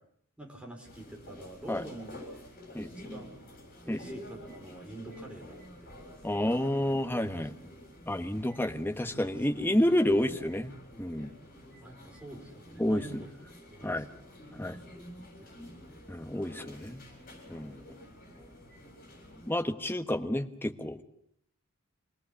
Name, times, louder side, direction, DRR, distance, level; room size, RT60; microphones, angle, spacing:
voice 1, 0.4-2.4 3.0-3.3 3.8-5.6 7.3-7.5 9.2-9.9 11.8-13.3 13.7-14.0 15.4-16.0, right 1 dB, 5° right, 0 dB, 4.4 m, -46 dB
sound 1, 0.8-19.5, equal, 40° left, 7.5 m, -49 dB
voice 2, 6.2-7.5 8.1-10.7 11.0-11.3 12.8-13.0 13.8-14.1 14.5-14.8 16.1-17.0 17.5-17.8 19.5-21.0, left 1 dB, 10° left, 6 dB, 1.2 m, -29 dB
26.0 x 18.5 x 8.4 m, 0.72 s
head